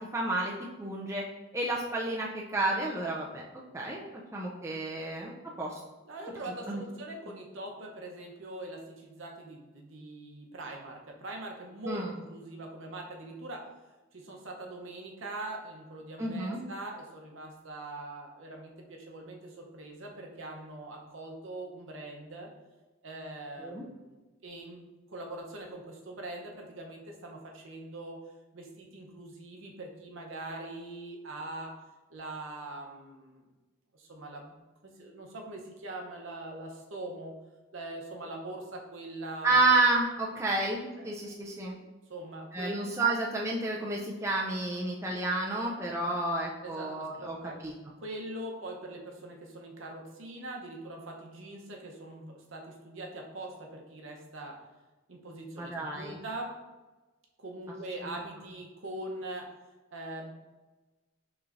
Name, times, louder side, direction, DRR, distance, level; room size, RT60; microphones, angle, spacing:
voice 1, 0.1-0.5 0.8-1.2 1.5-3.4 3.7-4.0 4.3-5.3 5.6-5.8 6.7-6.8 11.8-12.1 16.2-16.6 23.6-23.8 39.4-41.7 42.5-47.4 47.6-47.7 55.6-56.2 58.0-58.1, right 2 dB, 15° right, -2 dB, 0.4 m, -30 dB
voice 2, 6.1-13.6 14.1-22.5 23.0-28.2 28.5-31.7 32.1-33.4 33.9-34.5 35.0-37.3 37.7-39.8 41.0-41.3 42.1-43.1 46.6-47.6 48.0-54.5 55.1-56.5 57.4-59.5 59.9-60.3, right 1 dB, 70° right, 1 dB, 0.8 m, -42 dB
5.9 x 3.1 x 2.5 m, 1.1 s
head